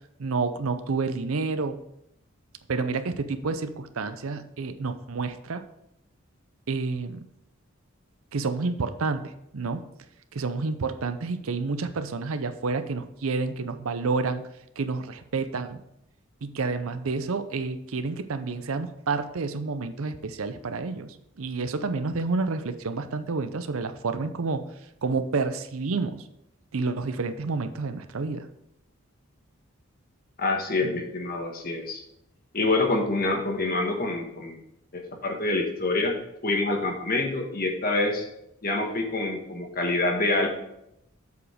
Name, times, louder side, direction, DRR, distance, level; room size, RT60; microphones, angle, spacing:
voice 1, 0.2-1.8 2.7-5.6 6.7-7.2 8.3-9.8 10.3-14.4 14.8-15.8 16.4-24.6 25.0-26.3 26.7-28.5, right 4 dB, 75° right, 10 dB, 0.6 m, -29 dB
voice 2, 30.4-32.0 32.5-34.6 34.9-36.2 36.4-38.2 38.6-40.5, left 2 dB, 40° left, 2 dB, 1.4 m, -26 dB
8.1 x 5.0 x 4.9 m, 0.79 s
head